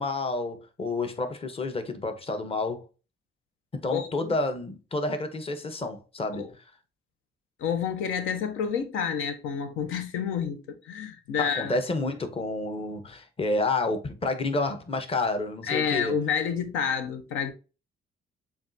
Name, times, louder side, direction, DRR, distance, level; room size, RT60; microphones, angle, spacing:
voice 1, 0.0-2.8 3.7-6.5 11.4-16.1, left 2 dB, 30° left, 0.9 m, -29 dB
voice 2, 3.9-4.3 6.4-6.5 7.6-11.7 15.7-17.5, left 7 dB, 85° left, 0.7 m, -29 dB
7.0 x 2.4 x 2.6 m
cardioid pair, 90°, 20 cm